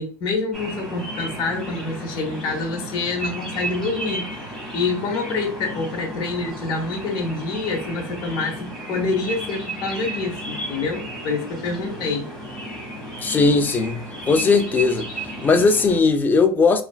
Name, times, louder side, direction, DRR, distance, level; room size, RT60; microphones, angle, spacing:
voice 1, 0.0-12.3, left 3 dB, 45° left, 0.8 m, -27 dB
sound 1, 0.5-16.0, right 1 dB, ahead, 1.1 m, -33 dB
voice 2, 13.2-15.1 15.4-16.8, left 4 dB, 20° left, 0.3 m, -18 dB
3.0 x 2.4 x 2.2 m
cardioid pair, 140°, 10 cm